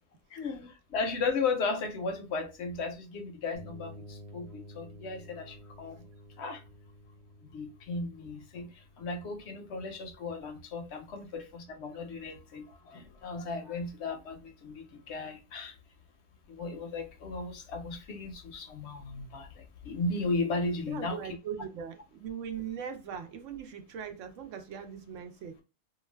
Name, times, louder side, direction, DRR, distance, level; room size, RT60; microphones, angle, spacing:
voice 1, 0.3-6.0 6.4-6.6 7.4-15.8 16.5-21.4, left 3 dB, 65° left, 0.7 m, -35 dB
sound 1, 3.5-11.3, equal, 35° right, 0.6 m, -52 dB
voice 2, 20.8-25.6, right 8 dB, 70° right, 0.9 m, -40 dB
2.4 x 2.3 x 3.1 m
omnidirectional pair, 1.4 m